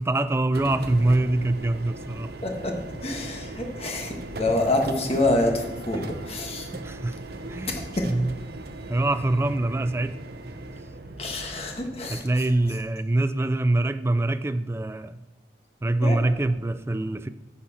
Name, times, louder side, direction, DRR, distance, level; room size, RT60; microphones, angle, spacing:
voice 1, 0.0-2.3 5.9-6.2 6.7-7.2 7.5-8.4 8.9-10.2 12.1-15.2 15.8-17.3, right 2 dB, 15° right, 12 dB, 0.3 m, -24 dB
sound 1, 0.5-12.1, right 2 dB, 60° right, 0.7 m, -38 dB
voice 2, 2.4-2.7 3.0-6.7 7.7-8.1 11.2-12.2 16.0-16.2, left 2 dB, 35° left, 2 dB, 1.4 m, -27 dB
10.5 x 4.2 x 7.2 m, 1.0 s
head